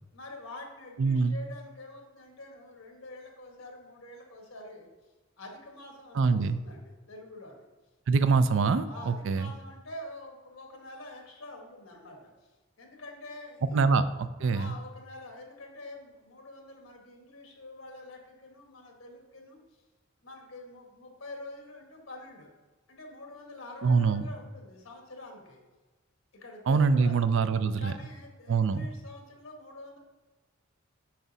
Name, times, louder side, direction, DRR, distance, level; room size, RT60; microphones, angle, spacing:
voice 1, 0.1-4.9 5.4-7.6 8.8-12.5 12.8-14.0 14.5-19.6 20.2-22.5 22.9-25.6 26.3-27.2 27.8-30.0, left 1 dB, 85° left, 1 dB, 1.5 m, -46 dB
voice 2, 1.0-1.4 6.2-6.6 8.1-9.5 13.7-14.8 23.8-24.2 26.7-27.9 28.5-28.9, right 4 dB, 65° right, 12 dB, 0.4 m, -24 dB
7.3 x 5.9 x 2.7 m, 1.2 s
head